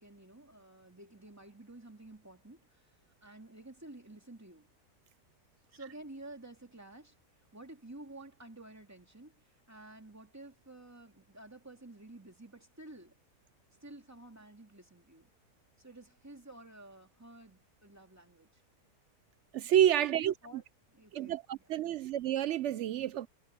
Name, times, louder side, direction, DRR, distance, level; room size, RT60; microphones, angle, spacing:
voice 1, 0.0-2.9 3.2-4.7 5.7-7.2 7.5-13.1 13.8-15.3 15.8-18.6 20.0-21.4 21.8-22.0, right 2 dB, 10° right, 2.5 m, -52 dB
voice 2, 19.5-20.3 21.1-23.3, right 11 dB, 80° right, 0.6 m, -29 dB
omnidirectional pair, 1.7 m